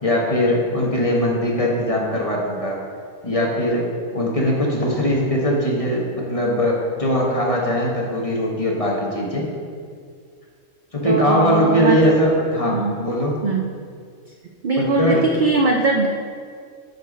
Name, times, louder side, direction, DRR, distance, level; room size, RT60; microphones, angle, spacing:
voice 1, 0.0-2.8 3.2-9.5 10.9-13.3 14.8-15.3, equal, 25° left, -3 dB, 1.3 m, -20 dB
voice 2, 11.0-12.0 12.7-13.0 13.4-13.7 14.6-16.1, right 3 dB, 60° right, 2 dB, 0.5 m, -20 dB
8.0 x 4.6 x 6.1 m, 2.1 s
omnidirectional pair, 1.4 m